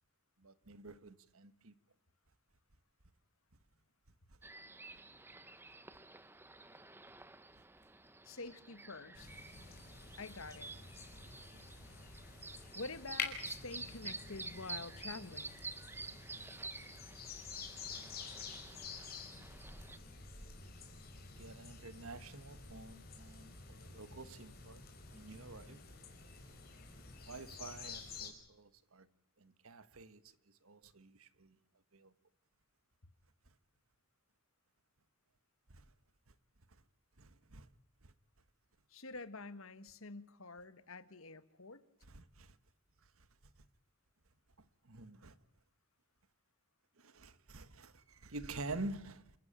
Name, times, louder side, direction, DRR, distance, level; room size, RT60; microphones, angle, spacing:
voice 1, 0.4-1.7 9.6-9.7 16.8-16.9 21.4-24.8 25.1-25.8 27.3-29.1 29.4-30.2 30.6-31.6 31.9-32.1 35.7-35.8 37.2-37.7 38.0-38.1 42.1-42.6 44.8-45.3 47.0-49.4, right 2 dB, 70° right, 1.5 m, -48 dB
sound 1, 4.4-20.0, right 3 dB, 10° right, 0.9 m, -50 dB
voice 2, 8.2-9.3 10.2-10.7 12.7-15.6 38.9-41.8, left 3 dB, 70° left, 1.6 m, -47 dB
sound 2, 9.1-28.3, left 5 dB, 45° left, 5.4 m, -49 dB
29.0 x 14.5 x 8.9 m
head